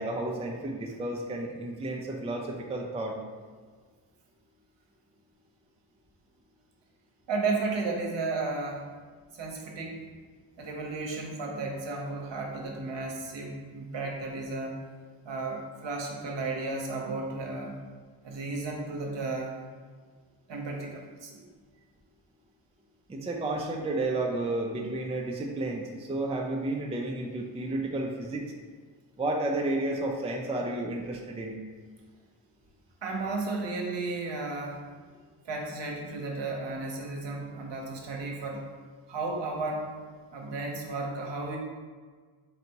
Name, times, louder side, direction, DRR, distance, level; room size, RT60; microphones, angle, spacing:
voice 1, 0.0-3.2 23.1-28.5 29.2-31.6, right 2 dB, 15° right, 0 dB, 0.5 m, -32 dB
voice 2, 7.3-8.8 9.3-10.0 10.6-14.8 15.2-17.8 18.2-19.6 20.5-21.4 33.0-34.8 35.4-38.6 39.1-39.9 40.3-41.6, right 3 dB, 60° right, 0 dB, 0.9 m, -33 dB
3.9 x 3.3 x 2.9 m, 1.5 s
supercardioid pair, 50°, 50 cm